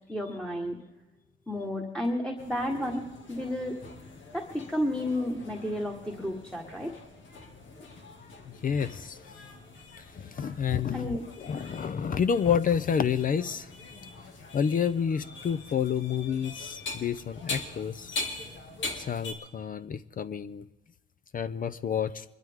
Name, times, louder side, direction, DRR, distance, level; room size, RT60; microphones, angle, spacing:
voice 1, 0.1-0.8 1.5-3.0 3.3-3.8 4.3-6.9 10.9-11.2, left 1 dB, 5° left, 0 dB, 1.5 m, -31 dB
sound 1, 2.4-19.3, left 3 dB, 70° left, 2.2 m, -43 dB
voice 2, 8.6-9.2 10.0-13.7 14.5-18.2 19.0-20.6 21.3-22.2, left 7 dB, 45° left, 14 dB, 0.6 m, -29 dB
23.0 x 12.5 x 3.6 m, 1.0 s
cardioid pair, 105°, 20 cm